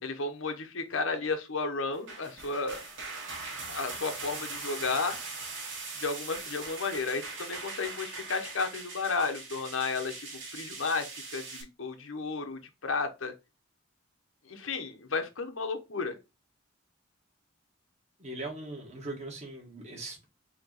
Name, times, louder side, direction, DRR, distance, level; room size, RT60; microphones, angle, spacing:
voice 1, 0.0-2.8 3.7-5.2 6.0-13.3 14.5-16.2, left 4 dB, 90° left, 1.0 m, -33 dB
sound 1, 1.9-11.6, right 3 dB, 70° right, 2.1 m, -41 dB
voice 2, 18.2-20.3, right 2 dB, 35° right, 1.8 m, -40 dB
4.5 x 3.0 x 4.0 m
head